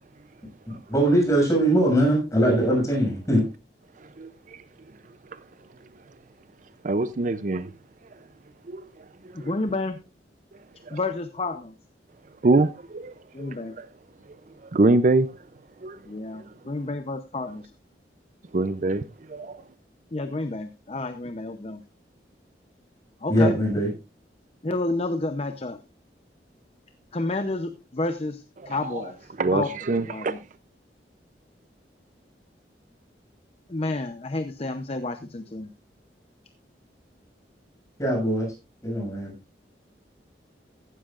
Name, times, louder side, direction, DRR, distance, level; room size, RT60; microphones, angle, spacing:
voice 1, 0.9-3.4 23.3-23.9 38.0-38.5 38.8-39.3, right 1 dB, 20° left, 6.4 m, -21 dB
voice 2, 6.8-7.7 8.7-8.9 9.4-9.5 10.9-11.0 12.4-13.1 13.4-13.9 14.7-15.3 15.8-16.0 18.5-19.6 28.6-29.0 29.4-30.4, right 2 dB, 45° right, 0.5 m, -24 dB
voice 3, 9.3-10.0 10.9-11.7 13.3-13.7 16.1-17.7 20.1-21.8 23.2-23.6 24.6-25.8 27.1-29.2 29.5-30.4 33.7-35.7, left 2 dB, 35° left, 0.7 m, -30 dB
15.5 x 12.5 x 2.5 m
head